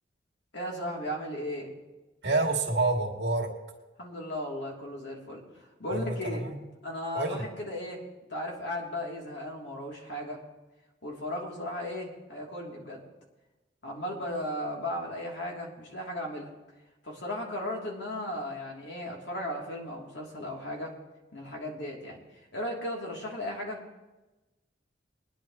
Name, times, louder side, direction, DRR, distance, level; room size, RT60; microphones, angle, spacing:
voice 1, 0.5-1.7 4.0-6.4 6.8-8.0 8.3-10.4 11.0-13.0 13.8-16.5 17.0-20.9 21.3-23.8, left 1 dB, 65° left, -2 dB, 3.1 m, -36 dB
voice 2, 2.2-3.5 5.9-6.6 7.1-7.4, right 2 dB, 65° right, 1 dB, 2.1 m, -28 dB
23.0 x 10.5 x 3.1 m, 1.1 s
head